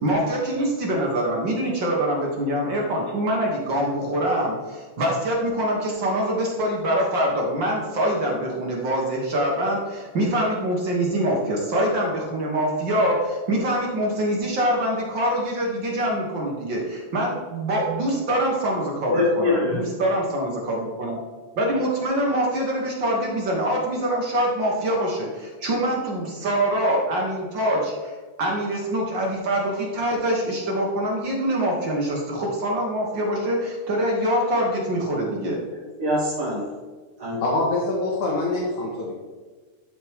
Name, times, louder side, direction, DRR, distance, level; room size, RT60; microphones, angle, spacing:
voice 1, 0.0-19.1 19.7-21.2 21.6-28.1 28.4-35.6, right 1 dB, 50° right, -2 dB, 1.5 m, -24 dB
voice 2, 19.1-20.0 35.7-36.7 37.2-37.4, left 2 dB, 15° right, -7 dB, 2.4 m, -24 dB
voice 3, 37.4-39.1, left 2 dB, 80° left, -4 dB, 2.8 m, -24 dB
12.5 x 5.2 x 3.5 m, 1.4 s
omnidirectional pair, 3.5 m